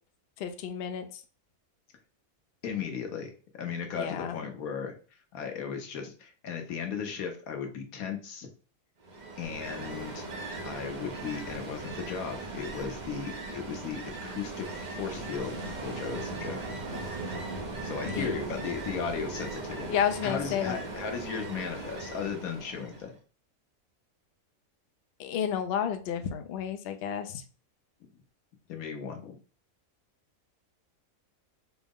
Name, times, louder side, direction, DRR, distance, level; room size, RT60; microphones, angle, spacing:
voice 1, 0.4-1.2 4.0-4.4 18.1-18.3 19.9-20.8 25.2-27.4, left 8 dB, 65° left, 6 dB, 0.6 m, -31 dB
voice 2, 2.6-4.9 5.3-8.5 9.4-10.3 10.6-17.1 17.8-20.0 20.2-23.1 28.7-29.4, left 6 dB, 85° left, 4 dB, 1.3 m, -36 dB
Ocean, 9.0-23.1, right 2 dB, 45° right, 0.7 m, -38 dB
4.6 x 2.0 x 3.6 m, 0.37 s
omnidirectional pair, 1.4 m